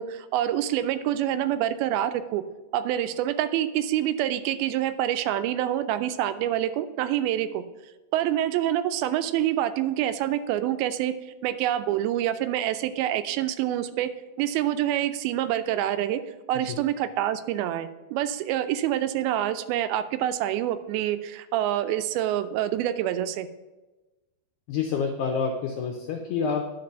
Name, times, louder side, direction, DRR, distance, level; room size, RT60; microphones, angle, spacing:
voice 1, 0.0-2.4 2.7-7.6 8.1-11.1 11.4-14.1 14.4-16.2 16.5-23.5, right 12 dB, 90° right, 12 dB, 2.4 m, -26 dB
voice 2, 24.7-26.7, left 5 dB, 85° left, 3 dB, 1.7 m, -28 dB
11.0 x 4.5 x 5.5 m, 1.1 s
omnidirectional pair, 4.2 m